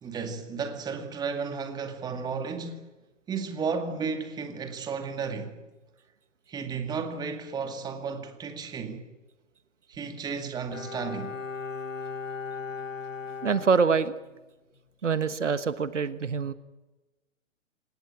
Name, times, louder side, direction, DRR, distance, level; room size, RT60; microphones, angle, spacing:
voice 1, 0.0-2.9 3.3-5.6 6.5-9.1 9.9-11.4, right 5 dB, 10° right, 2.2 m, -33 dB
Bowed string instrument, 10.7-14.5 14.8-14.9, left 5 dB, 75° left, 1.7 m, -37 dB
voice 2, 13.4-14.1 15.0-16.5, right 5 dB, 65° right, 1.5 m, -25 dB
27.5 x 18.5 x 9.1 m
figure-of-eight pair, 130°, 38 cm